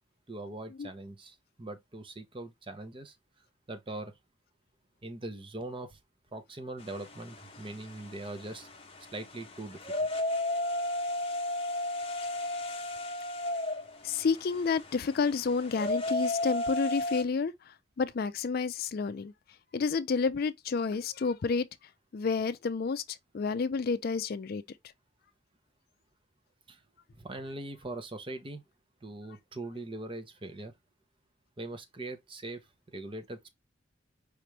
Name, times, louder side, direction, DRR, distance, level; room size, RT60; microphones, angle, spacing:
voice 1, 0.3-3.2 3.7-4.1 5.0-6.0 6.3-8.7 9.1-10.1 26.7-26.8 27.1-28.6 29.0-30.7 31.6-33.5, right 2 dB, 25° right, 0.7 m, -41 dB
sound 1, 6.8-17.2, left 1 dB, 30° left, 0.9 m, -34 dB
voice 2, 14.0-19.3 19.7-21.7 22.1-24.6, left 5 dB, 50° left, 0.4 m, -30 dB
5.0 x 3.0 x 3.3 m
head